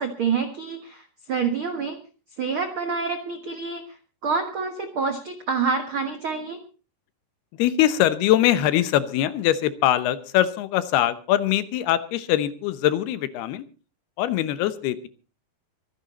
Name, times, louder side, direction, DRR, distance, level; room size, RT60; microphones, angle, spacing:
voice 1, 0.0-2.0 2.4-4.0 4.2-6.6, right 5 dB, 75° right, 7 dB, 1.1 m, -27 dB
voice 2, 7.5-13.7 14.2-15.1, left 12 dB, 80° left, 14 dB, 2.9 m, -22 dB
24.0 x 10.5 x 4.2 m, 0.35 s
omnidirectional pair, 4.6 m